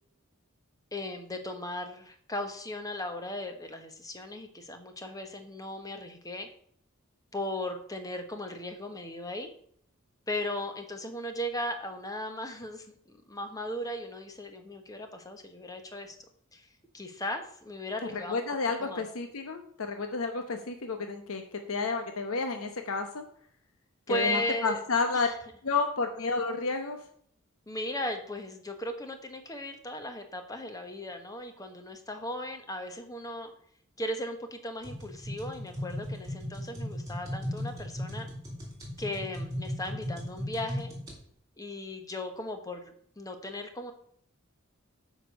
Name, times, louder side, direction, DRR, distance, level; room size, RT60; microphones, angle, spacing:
voice 1, 0.9-6.5 7.3-9.5 10.3-12.9 13.3-16.2 16.5-16.7 16.9-18.4 18.8-19.1 24.1-24.8 25.1-25.3 27.7-33.5 34.0-38.3 39.0-40.9 41.6-43.9, left 1 dB, 15° left, 6 dB, 1.2 m, -37 dB
voice 2, 18.1-23.2 24.1-25.3 25.6-27.0, left 4 dB, 80° left, 6 dB, 0.9 m, -31 dB
sound 1, 34.8-41.2, equal, 15° right, 3.6 m, -37 dB
8.5 x 5.1 x 6.5 m, 0.63 s
head